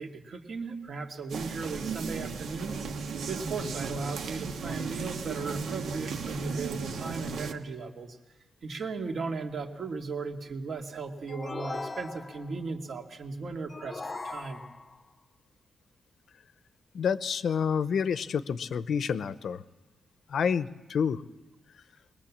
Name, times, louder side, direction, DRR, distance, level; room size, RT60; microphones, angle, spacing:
voice 1, 0.0-2.8 3.3-8.2 8.6-14.6, right 4 dB, 55° right, 3 dB, 2.3 m, -37 dB
sound 1, 1.3-7.5, right 5 dB, 85° right, 1.4 m, -35 dB
sound 2, 11.3-12.6 13.7-15.0, left 3 dB, 25° left, 0.6 m, -39 dB
voice 2, 16.9-19.6 20.3-21.2, left 7 dB, 65° left, 14 dB, 0.7 m, -28 dB
22.5 x 20.5 x 7.3 m, 1.1 s
wide cardioid pair, 125°, 0 cm